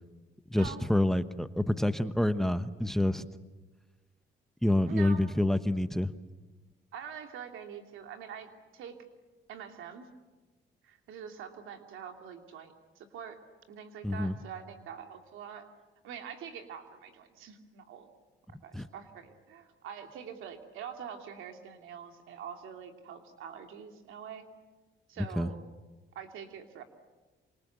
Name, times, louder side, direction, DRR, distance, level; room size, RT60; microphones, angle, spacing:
voice 1, 0.5-3.3 4.6-6.1 14.0-14.3 18.7-18.9 25.4-25.5, left 1 dB, ahead, 12 dB, 1.1 m, -27 dB
voice 2, 4.8-5.4 6.9-9.0 9.5-10.1 10.8-13.4 13.7-15.7 16.0-18.1 18.6-24.5 25.1-25.6 26.1-26.8, right 7 dB, 85° right, 5 dB, 2.8 m, -45 dB
27.5 x 25.5 x 8.1 m, 1.2 s
cardioid pair, 90°, 20 cm